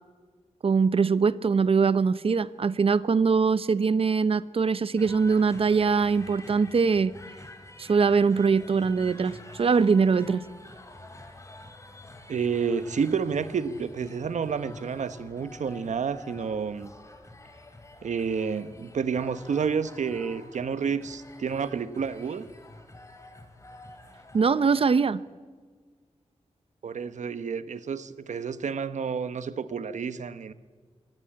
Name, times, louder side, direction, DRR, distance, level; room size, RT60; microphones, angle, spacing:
voice 1, 0.6-7.1 7.8-10.4 24.3-25.2, right 5 dB, 50° right, 16 dB, 0.7 m, -22 dB
sound 1, 5.0-24.8, left 2 dB, 25° left, 2.6 m, -48 dB
voice 2, 12.3-16.9 18.0-22.5 26.8-30.5, right 6 dB, 85° right, 12 dB, 1.0 m, -30 dB
23.0 x 18.0 x 8.7 m, 1.5 s
wide cardioid pair, 135°, 12 cm